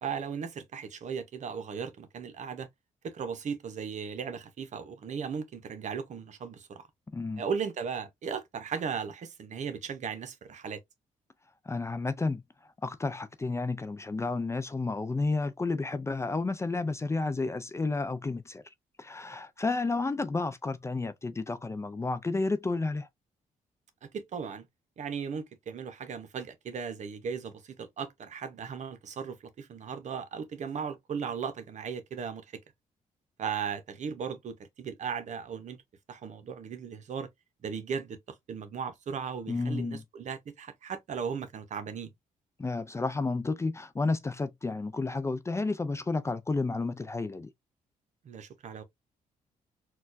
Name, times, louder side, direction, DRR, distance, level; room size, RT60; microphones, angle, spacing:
voice 1, 0.0-2.7 3.0-6.9 7.4-10.8 24.0-24.7 25.0-32.4 33.4-35.8 36.1-37.3 37.6-38.2 38.5-42.1 48.2-48.8, right 6 dB, 60° right, 0.7 m, -37 dB
voice 2, 11.7-12.4 12.8-18.6 19.0-23.1 39.5-40.0 42.6-47.5, left 3 dB, 20° left, 0.4 m, -31 dB
4.2 x 2.3 x 2.5 m
cardioid pair, 80°, 14 cm